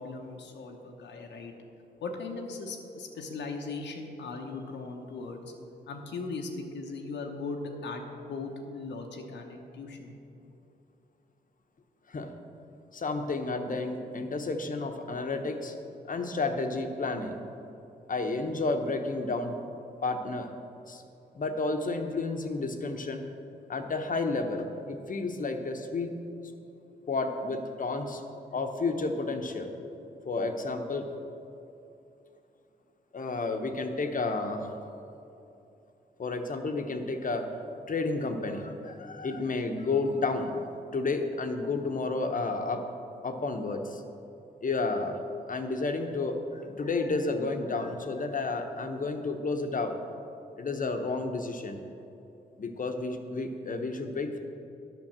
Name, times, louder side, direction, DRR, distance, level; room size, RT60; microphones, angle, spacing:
voice 1, 0.0-1.5 2.0-5.4 5.9-10.2, left 3 dB, 85° left, 2 dB, 0.9 m, -38 dB
voice 2, 12.9-15.7 16.1-17.4 18.1-19.6 20.0-20.5 20.9-21.0 21.3-23.2 23.7-26.1 27.1-28.2 28.5-29.7 30.2-31.0 33.1-34.8 36.2-37.4 37.9-40.6 40.9-42.8 43.2-44.0 44.6-45.2 45.5-50.0 50.6-51.8 52.6-54.4, left 3 dB, 50° left, 5 dB, 0.9 m, -31 dB
9.1 x 5.3 x 7.3 m, 2.8 s
cardioid pair, 55°, 18 cm